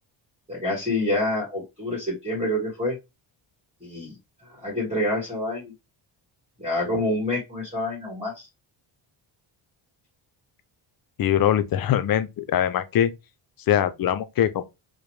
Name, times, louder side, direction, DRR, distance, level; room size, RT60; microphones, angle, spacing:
voice 1, 0.5-3.0 3.8-4.1 4.5-5.7 6.6-8.5, left 1 dB, 10° right, 1.4 m, -27 dB
voice 2, 11.2-13.1 13.7-14.6, left 10 dB, 45° left, 0.5 m, -22 dB
4.8 x 2.1 x 3.1 m
cardioid pair, 115°, 48 cm